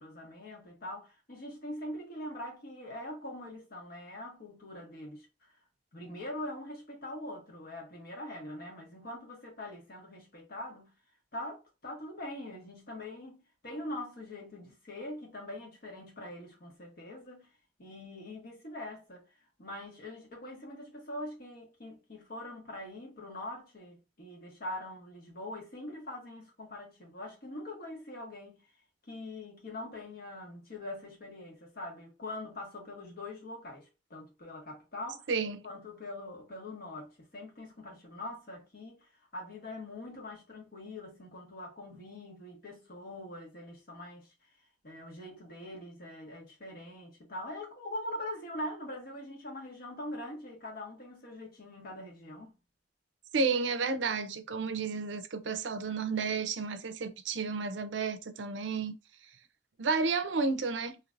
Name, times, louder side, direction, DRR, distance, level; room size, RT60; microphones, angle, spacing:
voice 1, 0.0-5.5 5.9-10.9 11.3-13.4 13.6-17.5 17.8-19.3 19.6-28.6 29.1-35.3 35.6-44.3 44.8-52.5, left 1 dB, 55° left, 1.5 m, -43 dB
voice 2, 35.3-35.6 53.3-58.9 59.8-61.0, right 4 dB, 85° right, 0.6 m, -31 dB
3.2 x 2.9 x 2.5 m
head